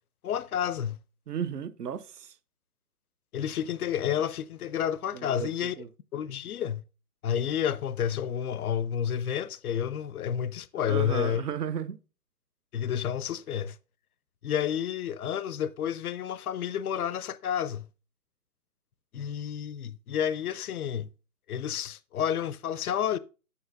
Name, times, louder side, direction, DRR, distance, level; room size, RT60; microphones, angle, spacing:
voice 1, 0.2-1.0 3.3-5.8 6.1-6.8 7.2-11.4 12.7-13.8 14.4-17.9 19.1-21.1 21.5-23.2, left 9 dB, 70° left, 0.5 m, -30 dB
voice 2, 1.3-2.3 5.1-5.9 10.9-12.0, right 8 dB, 85° right, 0.8 m, -34 dB
7.1 x 6.4 x 2.6 m
hypercardioid pair, 180°, 46 cm